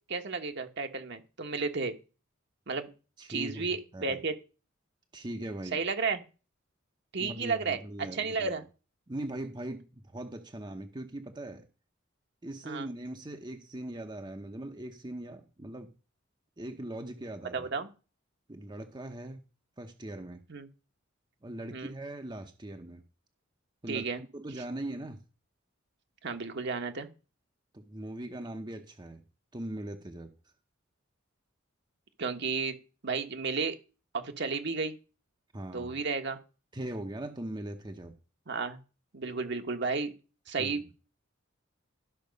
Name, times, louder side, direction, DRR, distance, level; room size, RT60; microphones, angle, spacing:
voice 1, 0.1-1.9 2.7-2.9 3.3-4.3 5.7-6.2 7.1-7.8 8.1-8.6 12.7-12.9 17.5-17.9 20.5-20.7 21.7-21.9 23.9-24.2 26.2-27.1 32.2-32.8 33.0-33.8 34.1-35.0 35.7-36.4 38.5-38.8 39.1-40.1 40.5-40.8, right 4 dB, 55° right, 6 dB, 1.2 m, -32 dB
voice 2, 3.2-4.2 5.1-5.8 7.2-8.6 9.1-11.7 12.4-15.9 16.6-17.7 18.5-19.4 19.8-20.4 21.4-23.0 23.8-25.2 27.7-29.2 29.5-30.3 35.5-35.9 36.7-38.1 40.6-40.8, right 1 dB, 20° right, 6 dB, 0.8 m, -40 dB
13.0 x 6.0 x 5.2 m, 0.33 s
head